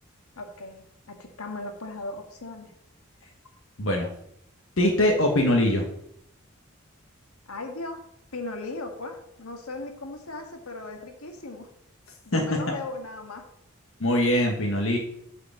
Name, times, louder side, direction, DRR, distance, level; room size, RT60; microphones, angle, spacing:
voice 1, 0.4-2.7 7.5-8.0 8.3-11.7 12.3-13.4, left 2 dB, 90° left, 3 dB, 1.7 m, -37 dB
voice 2, 3.8-4.1 4.8-5.8 12.3-12.4 14.0-15.0, left 1 dB, 70° left, 0 dB, 1.4 m, -22 dB
8.5 x 5.0 x 7.1 m, 0.73 s
head